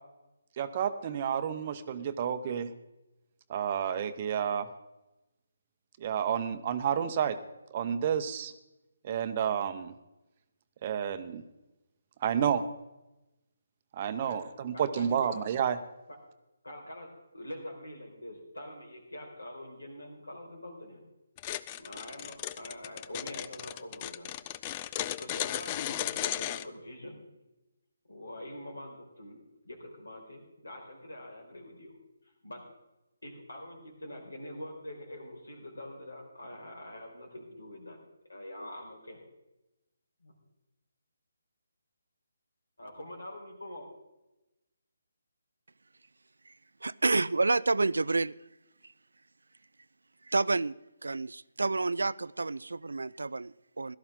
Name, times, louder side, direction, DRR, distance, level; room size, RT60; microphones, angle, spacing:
voice 1, 0.6-2.7 3.5-4.7 6.0-7.4 7.7-8.5 9.0-9.9 10.8-11.4 12.2-12.6 13.9-15.8, right 8 dB, 35° right, 11 dB, 0.9 m, -30 dB
voice 2, 14.7-15.4 16.1-16.2 16.6-21.1 21.8-24.3 25.1-27.2 28.1-31.9 32.4-32.6 33.2-38.0 38.3-39.2 40.2-40.4 42.8-43.9, left 1 dB, 80° left, 1 dB, 4.7 m, -45 dB
sound 1, 21.4-26.7, left 13 dB, 25° left, 0.4 m, -35 dB
voice 3, 46.8-48.4 48.8-48.9 50.2-54.0, right 3 dB, 75° right, 20 dB, 0.4 m, -29 dB
16.5 x 13.0 x 3.8 m, 0.98 s
figure-of-eight pair, 150°, 0 cm